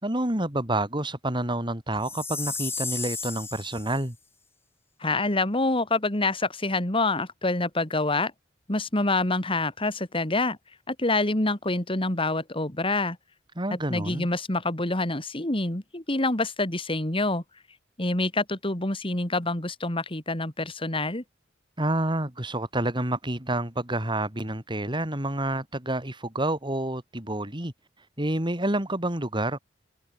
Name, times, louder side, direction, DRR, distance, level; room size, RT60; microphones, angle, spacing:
voice 1, 0.0-4.2 13.6-14.3 21.8-27.7 28.2-29.6, right 1 dB, 25° right, 4.5 m, -28 dB
Chime, 2.0-4.0, left 4 dB, 15° left, 1.6 m, -34 dB
voice 2, 5.0-8.3 8.7-10.6 10.9-13.2 13.9-17.4 18.0-21.2, left 2 dB, 30° left, 2.9 m, -26 dB
head